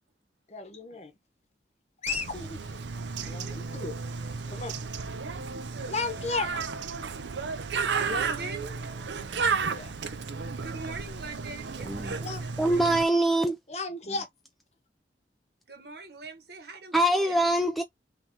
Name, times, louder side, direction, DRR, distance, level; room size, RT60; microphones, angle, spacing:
voice 1, 0.5-1.1 2.0-2.8 3.2-4.0 4.5-4.7 5.9-6.5 9.7-9.9 12.2-12.4 13.7-14.3, left 3 dB, 35° left, 0.9 m, -34 dB
Bird, 2.1-13.0, right 5 dB, 80° right, 0.6 m, -33 dB
voice 2, 3.2-3.6 8.0-8.7 10.6-13.0 15.7-17.5, right 3 dB, 60° right, 1.3 m, -41 dB
voice 3, 12.6-13.6 16.9-17.8, right 1 dB, ahead, 0.3 m, -23 dB
3.6 x 3.1 x 2.9 m
head